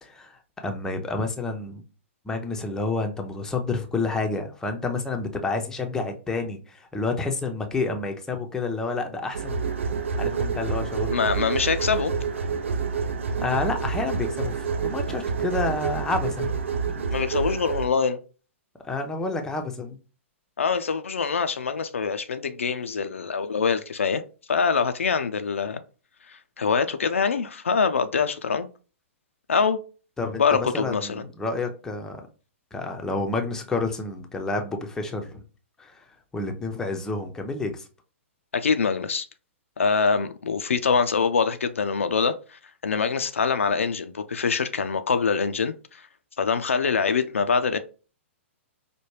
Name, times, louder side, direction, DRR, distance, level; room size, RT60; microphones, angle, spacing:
voice 1, 0.0-1.8 2.3-9.6 10.2-11.2 13.4-16.6 18.8-20.0 30.2-32.2 32.7-35.4 35.8-36.0 36.3-37.9, left 3 dB, 10° left, 0.6 m, -29 dB
sound 1, 9.3-17.9, right 5 dB, 70° right, 0.6 m, -28 dB
voice 2, 11.1-12.1 17.1-18.2 20.6-24.2 24.5-25.8 26.3-28.7 29.5-29.8 30.4-31.2 38.5-39.3 39.8-46.0 46.4-47.8, left 5 dB, 75° left, 0.4 m, -24 dB
4.9 x 2.2 x 3.1 m
figure-of-eight pair, 115°, 7 cm